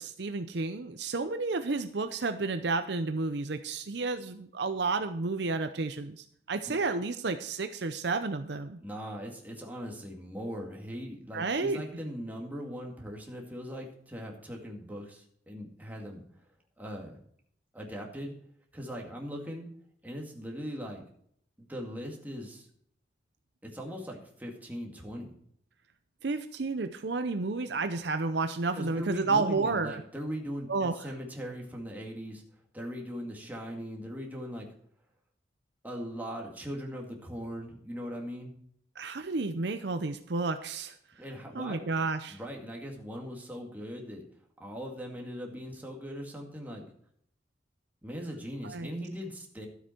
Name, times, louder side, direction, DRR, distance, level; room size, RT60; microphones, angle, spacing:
voice 1, 0.0-8.8 11.3-11.8 26.2-30.0 30.7-31.0 39.0-40.9 41.5-42.4 48.6-48.9, right 3 dB, 60° right, 9 dB, 0.6 m, -31 dB
voice 2, 8.8-16.2 16.8-17.2 17.7-18.4 18.7-19.7 20.0-21.0 21.6-22.7 23.6-25.3 28.7-32.4 32.7-34.7 35.8-38.5 41.2-41.9 42.3-44.2 44.6-46.9 48.0-49.7, equal, 10° right, 0 dB, 2.1 m, -40 dB
12.5 x 8.0 x 4.5 m, 0.65 s
head